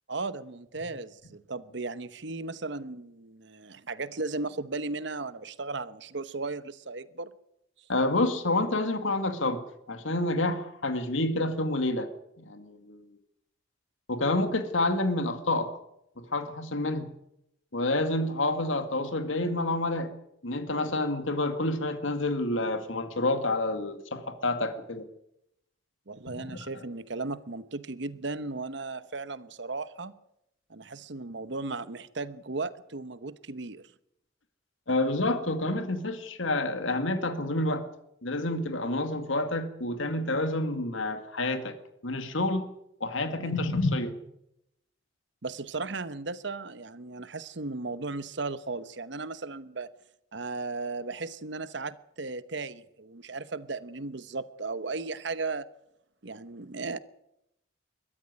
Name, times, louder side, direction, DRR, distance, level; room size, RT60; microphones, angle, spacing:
voice 1, 0.1-7.3 26.1-30.1 30.7-33.9 43.3-43.4 45.4-49.9 50.3-55.7 56.2-57.0, right 3 dB, 60° right, 1.0 m, -36 dB
voice 2, 7.9-9.6 9.9-12.1 12.5-13.0 14.1-15.7 16.3-17.1 17.7-20.1 20.4-25.0 34.9-37.9 38.2-41.8 42.0-42.7 43.0-44.1, left 2 dB, 75° left, 2.2 m, -28 dB
22.0 x 14.0 x 9.7 m
head